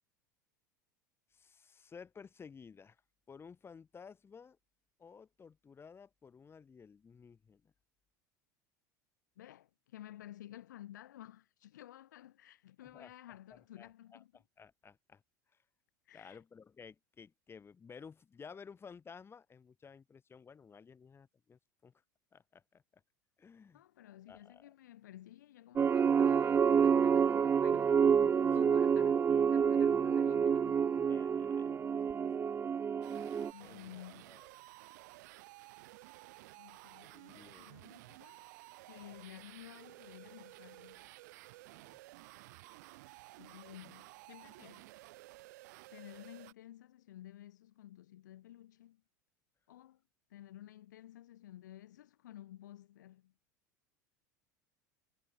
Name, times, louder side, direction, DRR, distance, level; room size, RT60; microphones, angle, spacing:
voice 1, 1.3-3.0 3.3-4.6 5.0-7.7 12.9-13.1 13.5-14.2 14.6-15.2 15.5-15.6 16.1-21.9 22.3-23.0 23.4-23.8 24.3-24.7 31.1-31.7 32.0-32.2 33.6-34.5 37.0-37.8 41.7-42.0, left 6 dB, 25° left, 5.8 m, -55 dB
voice 2, 9.4-14.4 16.0-16.4 23.7-30.9 33.5-34.3 36.5-38.4 38.9-41.1 43.4-44.9 45.9-49.0 49.7-50.0 50.3-53.3, left 13 dB, 70° left, 3.2 m, -53 dB
sound 1, 25.8-33.5, right 7 dB, 20° right, 0.5 m, -28 dB
sound 2, 33.0-46.5, right 22 dB, 60° right, 3.3 m, -54 dB
figure-of-eight pair, 75°, 10 cm